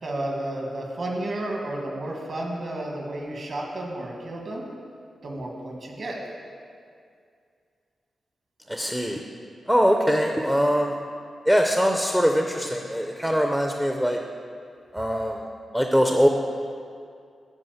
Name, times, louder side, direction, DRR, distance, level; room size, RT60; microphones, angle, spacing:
voice 1, 0.0-4.6 5.2-6.2, right 1 dB, 50° right, -1 dB, 1.8 m, -32 dB
voice 2, 8.7-9.2 9.7-11.0 11.5-14.2 14.9-15.4 15.7-16.3, equal, 5° right, 3 dB, 0.5 m, -22 dB
9.6 x 5.2 x 7.8 m, 2.3 s
wide cardioid pair, 155°, 0 cm